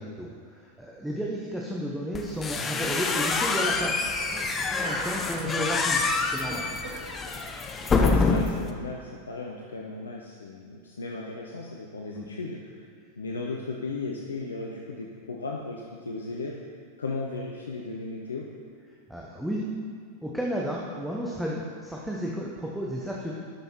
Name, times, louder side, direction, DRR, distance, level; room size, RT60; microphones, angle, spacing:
voice 1, 0.0-4.0 4.3-6.7 12.2-12.3 19.1-19.7 20.2-23.3, equal, 5° right, -3 dB, 1.0 m, -33 dB
sound 1, 2.1-8.7, left 4 dB, 20° left, 0.7 m, -26 dB
sound 2, 3.0-6.1 6.3-7.8, right 1 dB, 65° right, 1.6 m, -43 dB
voice 2, 7.9-12.9 13.2-16.6 17.0-18.5, left 3 dB, 70° left, -1 dB, 0.7 m, -36 dB
12.0 x 5.6 x 4.4 m, 2.1 s
figure-of-eight pair, 90°, 0 cm